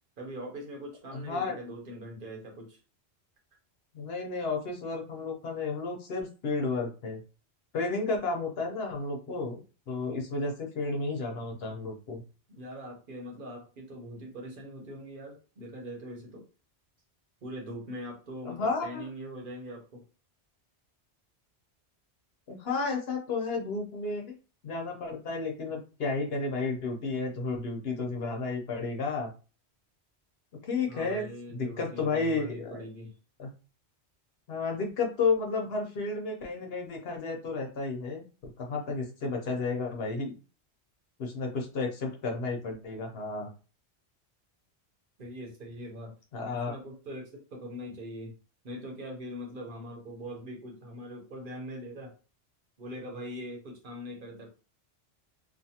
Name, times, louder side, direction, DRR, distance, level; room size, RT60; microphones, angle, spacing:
voice 1, 0.2-2.8 12.5-16.5 17.4-20.0 30.9-33.2 45.2-46.1 46.5-48.3 48.6-52.1 52.8-54.5, equal, 55° right, 0 dB, 0.9 m, -42 dB
voice 2, 1.1-1.6 3.9-7.2 7.7-9.6 9.9-12.2 18.4-19.0 22.5-24.3 24.6-29.3 30.6-31.3 31.5-32.8 33.4-33.5 34.5-38.2 38.6-40.3 41.2-43.5 46.3-46.7, left 3 dB, 65° left, 1 dB, 0.9 m, -32 dB
2.5 x 2.4 x 2.7 m, 0.34 s
omnidirectional pair, 1.1 m